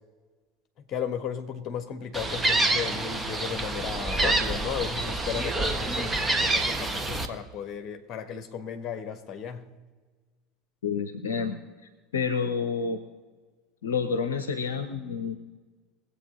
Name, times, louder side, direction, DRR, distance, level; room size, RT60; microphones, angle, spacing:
voice 1, 0.9-9.7, left 8 dB, 40° left, 1.6 m, -35 dB
Gull seagull, 2.1-7.3, right 2 dB, 10° right, 1.3 m, -27 dB
voice 2, 10.8-11.6 12.1-13.0 13.8-15.4, left 5 dB, 70° left, 0.8 m, -29 dB
22.5 x 8.3 x 3.9 m
figure-of-eight pair, 70°, 0 cm